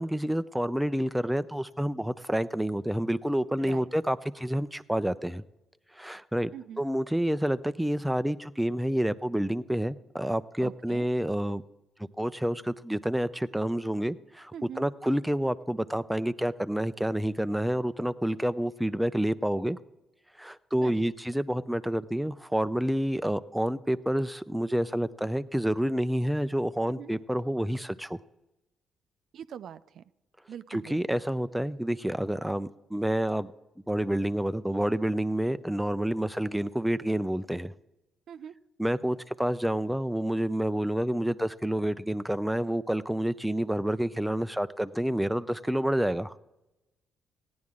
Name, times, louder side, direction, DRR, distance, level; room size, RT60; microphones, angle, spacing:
voice 1, 0.0-5.4 5.9-6.5 6.8-11.6 12.2-19.8 20.4-28.2 30.7-33.5 33.9-37.7 38.8-46.3, right 1 dB, 5° right, 11 dB, 0.4 m, -29 dB
voice 2, 10.6-11.1 14.5-14.9 20.8-21.0 27.0-27.1 29.3-30.0 30.5-31.0 38.3-38.5, right 9 dB, 65° right, 13 dB, 0.4 m, -42 dB
16.0 x 9.5 x 3.7 m, 0.98 s
cardioid pair, 90°, 0 cm